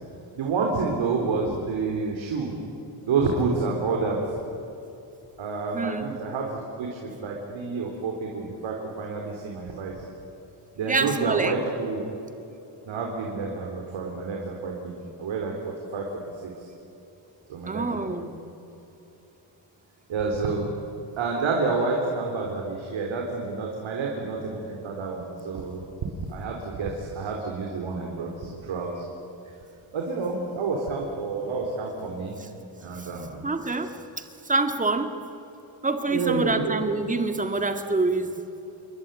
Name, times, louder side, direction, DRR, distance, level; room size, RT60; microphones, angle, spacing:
voice 1, 0.3-2.5 3.0-4.2 5.4-10.1 10.7-12.1 12.9-15.5 15.9-16.1 16.4-16.7 17.5-18.2 20.1-20.7 21.2-25.8 26.3-29.0 29.9-32.4 32.8-33.5 36.1-36.8, right 4 dB, 75° right, 0 dB, 4.1 m, -29 dB
voice 2, 5.7-6.1 10.8-11.5 17.7-18.3 33.4-33.9 34.5-35.1 35.8-38.4, right 3 dB, 15° right, 7 dB, 2.0 m, -26 dB
28.5 x 22.0 x 9.3 m, 3.0 s
wide cardioid pair, 165°, 46 cm